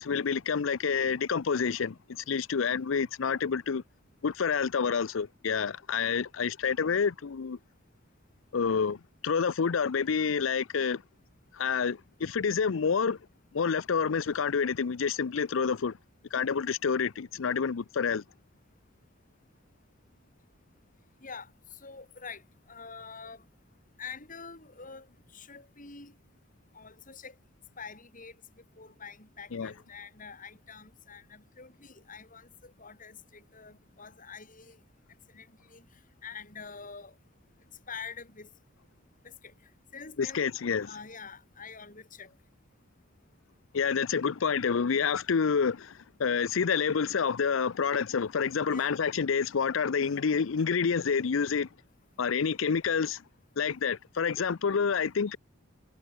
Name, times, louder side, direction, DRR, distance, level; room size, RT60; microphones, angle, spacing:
voice 1, 0.0-3.8 4.2-7.6 8.5-11.0 11.5-13.2 13.5-16.0 16.3-18.2 29.5-29.7 40.2-40.9 43.7-51.7 52.2-53.2 53.6-55.4, left 6 dB, 75° left, 0.5 m, -28 dB
voice 2, 21.8-22.4 22.7-23.4 24.0-25.1 25.3-26.1 26.7-27.3 27.8-28.3 28.8-34.8 35.3-35.8 36.2-37.1 37.9-38.5 39.9-42.3 48.7-49.0, left 5 dB, 40° left, 6.8 m, -46 dB
head